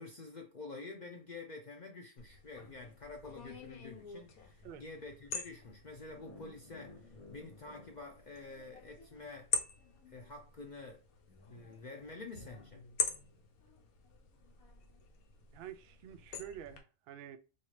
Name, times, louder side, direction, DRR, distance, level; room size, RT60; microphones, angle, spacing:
voice 1, 0.0-9.5 10.1-11.0 11.5-12.8, left 3 dB, 50° left, 0.5 m, -48 dB
sound 1, 2.2-16.8, left 5 dB, 90° left, 1.2 m, -44 dB
sound 2, 6.1-9.2, left 2 dB, 30° left, 1.0 m, -56 dB
voice 2, 15.5-17.4, right 10 dB, 75° right, 0.5 m, -48 dB
4.4 x 2.8 x 3.1 m
omnidirectional pair, 1.5 m